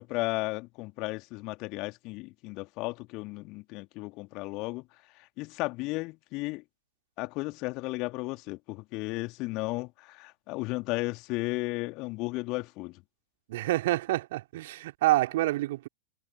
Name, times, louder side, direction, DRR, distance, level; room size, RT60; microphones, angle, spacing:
voice 1, 0.0-4.8 5.4-6.6 7.2-13.0, left 23 dB, 40° left, 2.7 m, -34 dB
voice 2, 13.5-15.9, right 16 dB, 55° right, 2.7 m, -27 dB
figure-of-eight pair, 90°, 0 cm